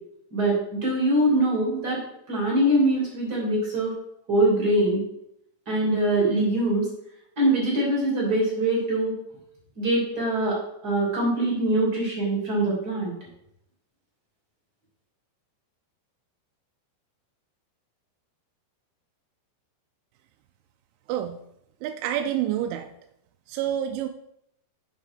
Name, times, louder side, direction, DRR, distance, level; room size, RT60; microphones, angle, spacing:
voice 1, 0.3-2.0 2.3-3.9 4.3-5.0 5.7-6.8 7.4-9.1 9.8-10.6 10.8-13.1, right 1 dB, 25° right, -4 dB, 2.6 m, -23 dB
voice 2, 21.8-22.9 23.5-24.1, right 11 dB, 85° right, 5 dB, 2.9 m, -28 dB
7.5 x 6.2 x 4.9 m, 0.78 s
omnidirectional pair, 5.6 m